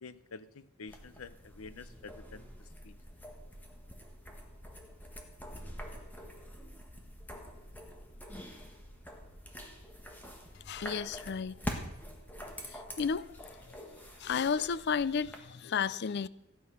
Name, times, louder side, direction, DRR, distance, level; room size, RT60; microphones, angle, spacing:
voice 1, 0.0-3.0, left 4 dB, 85° left, 0.7 m, -49 dB
sound 1, 0.9-15.4, equal, 10° left, 1.6 m, -46 dB
voice 2, 10.7-11.6 13.0-13.3 14.2-16.3, left 6 dB, 50° left, 0.4 m, -32 dB
15.5 x 9.4 x 5.9 m
head